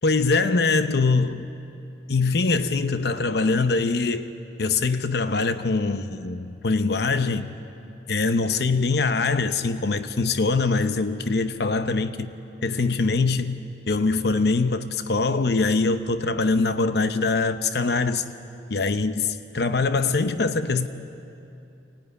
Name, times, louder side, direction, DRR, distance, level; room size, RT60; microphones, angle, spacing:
voice 1, 0.0-1.6 2.1-7.5 8.1-12.3 12.6-18.2 18.7-20.9, left 3 dB, 65° left, 0.7 m, -23 dB
23.0 x 17.5 x 9.8 m
head